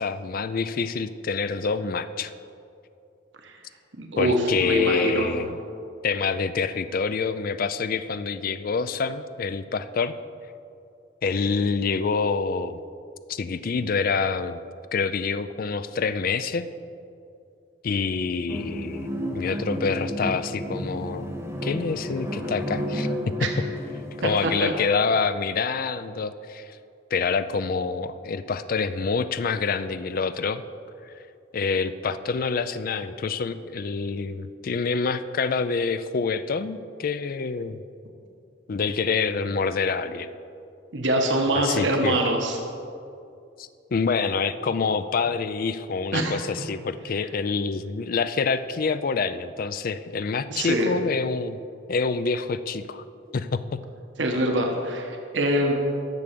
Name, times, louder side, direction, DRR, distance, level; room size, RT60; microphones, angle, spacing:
voice 1, 0.0-2.3 4.2-5.6 6.0-10.1 11.2-12.8 13.3-14.6 14.9-16.7 17.8-21.3 21.6-23.1 23.4-23.5 24.2-26.8 27.1-30.6 31.1-31.2 31.5-37.8 38.7-40.3 41.5-42.2 43.6-51.6 51.9-53.0 53.3-53.8, left 5 dB, 50° left, 12 dB, 0.4 m, -26 dB
voice 2, 4.0-5.3 23.4-23.5 24.2-24.7 40.9-42.6 46.1-46.4 50.5-50.9 54.2-55.7, right 1 dB, 85° right, 2 dB, 1.3 m, -24 dB
sound 1, 18.5-24.5, equal, 15° right, 1.3 m, -31 dB
10.5 x 7.2 x 6.7 m, 2.5 s
head